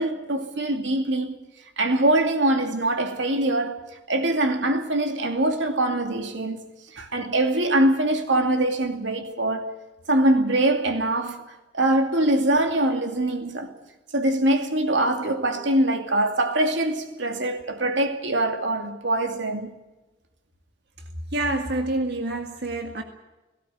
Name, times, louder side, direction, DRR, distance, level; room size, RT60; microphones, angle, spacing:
voice 1, 0.0-1.4 1.8-3.8 4.1-6.6 6.9-9.7 10.1-11.4 11.7-13.7 14.1-19.7, right 1 dB, 90° right, 2.6 m, -23 dB
voice 2, 21.3-23.0, right 2 dB, 60° right, 1.9 m, -27 dB
18.0 x 17.5 x 9.2 m
head